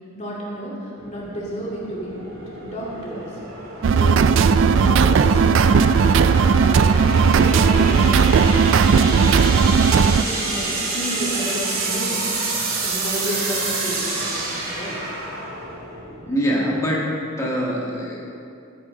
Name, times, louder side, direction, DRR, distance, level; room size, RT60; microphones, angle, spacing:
voice 1, 0.1-3.4 3.9-5.8 6.5-6.9 7.3-12.2 12.8-15.0, right 1 dB, 35° left, -5 dB, 2.4 m, -32 dB
sound 1, 1.0-16.4, right 3 dB, 75° right, 2.3 m, -28 dB
sound 2, 3.8-10.2, right 5 dB, 60° right, 0.3 m, -16 dB
voice 2, 16.2-17.0 17.3-18.2, equal, 15° left, -5 dB, 1.7 m, -23 dB
14.5 x 8.3 x 3.8 m, 2.5 s
head